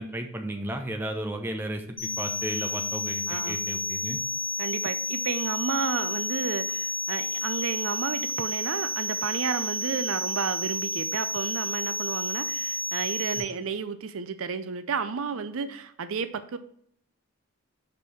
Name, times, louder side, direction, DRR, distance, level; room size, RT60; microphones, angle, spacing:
voice 1, 0.0-1.8 2.2-4.2 13.4-13.5, right 1 dB, 10° right, 3 dB, 0.7 m, -34 dB
sound 1, 2.0-13.4, left 1 dB, 25° left, 2.2 m, -31 dB
voice 2, 3.3-3.6 4.6-16.6, right 5 dB, 65° right, 11 dB, 0.5 m, -32 dB
5.3 x 4.5 x 6.1 m, 0.67 s
head